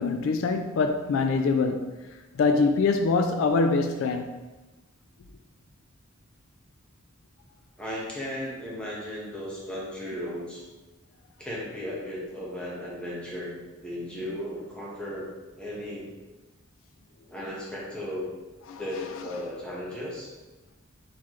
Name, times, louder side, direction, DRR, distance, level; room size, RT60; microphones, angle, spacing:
voice 1, 0.0-1.9 2.4-4.3 18.7-18.8, left 4 dB, 70° left, 0.3 m, -24 dB
voice 2, 7.8-10.6 11.4-13.5 13.8-15.3 15.6-16.1 17.3-18.3 18.8-20.3, left 1 dB, 5° left, 1.2 m, -35 dB
4.3 x 4.0 x 3.1 m
head